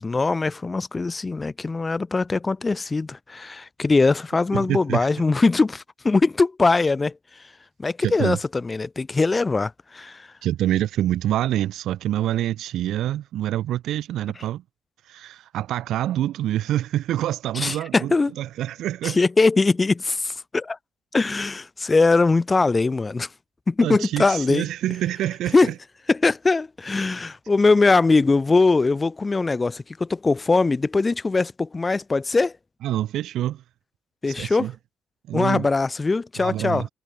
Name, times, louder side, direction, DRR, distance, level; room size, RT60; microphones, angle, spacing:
voice 1, 0.0-7.1 7.8-10.3 17.6-18.3 19.0-20.8 21.1-23.3 23.7-24.7 25.5-25.7 26.1-32.5 34.2-34.7 35.3-36.8, left 3 dB, 25° left, 0.4 m, -21 dB
voice 2, 4.5-5.1 8.0-8.4 10.4-14.6 15.0-19.2 23.8-25.7 32.8-33.6 34.3-34.7 35.3-35.7 36.4-36.9, right 13 dB, 80° right, 1.3 m, -26 dB
cardioid pair, 90°, 0 cm